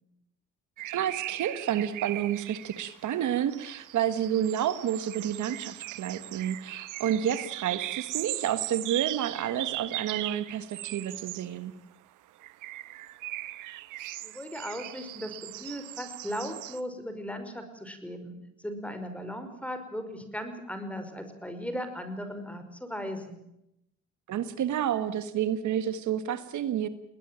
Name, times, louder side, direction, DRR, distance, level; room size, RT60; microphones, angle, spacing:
voice 1, 0.8-11.7 24.3-26.9, right 10 dB, 75° right, 12 dB, 1.6 m, -30 dB
sound 1, 0.8-11.5 12.4-16.8, right 16 dB, 90° right, 1.0 m, -38 dB
voice 2, 14.2-23.4, equal, 5° left, 8 dB, 5.2 m, -37 dB
21.0 x 19.5 x 9.0 m, 0.81 s
cardioid pair, 90°, 30 cm